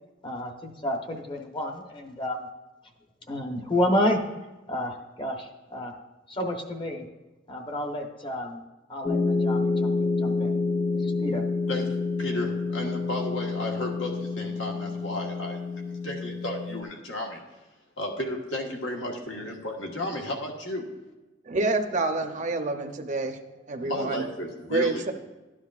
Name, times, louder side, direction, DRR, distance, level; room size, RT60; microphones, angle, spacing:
voice 1, 0.2-2.5 3.3-4.2 4.7-5.9 6.3-7.0 7.5-8.6 8.9-9.9 10.2-10.5 10.9-11.4, left 1 dB, 25° left, 3 dB, 0.9 m, -30 dB
sound 1, 9.0-16.8, left 4 dB, 45° left, 1.3 m, -28 dB
voice 2, 11.7-15.6 15.9-17.4 18.0-20.9 23.8-25.1, left 1 dB, 75° left, 1 dB, 1.4 m, -33 dB
voice 3, 21.5-23.4 23.7-24.3 24.7-25.1, right 3 dB, 40° right, 5 dB, 0.7 m, -27 dB
12.5 x 10.0 x 2.4 m, 1.1 s
head